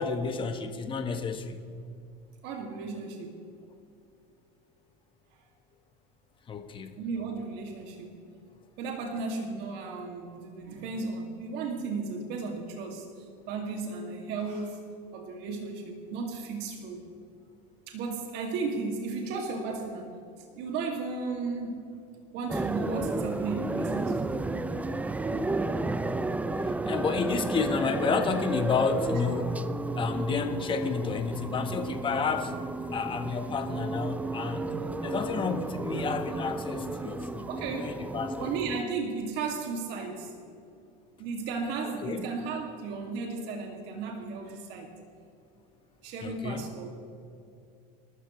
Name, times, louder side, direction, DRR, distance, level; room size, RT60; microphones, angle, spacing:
voice 1, 0.0-1.6 6.5-7.0 26.7-29.6 29.9-32.5 32.9-34.8 35.0-37.5 37.8-38.5 41.8-42.3 46.2-46.7, left 5 dB, 25° left, 6 dB, 1.4 m, -31 dB
voice 2, 2.4-3.4 7.0-8.1 8.8-14.8 15.1-17.0 17.9-20.1 20.6-21.9 22.3-24.5 37.5-37.9 38.4-40.3 41.2-44.9 46.0-46.9, right 4 dB, 55° right, 2 dB, 2.4 m, -35 dB
sound 1, 22.5-38.8, right 2 dB, 5° right, 0.5 m, -32 dB
28.5 x 12.5 x 3.2 m, 2.5 s
supercardioid pair, 125°, 21 cm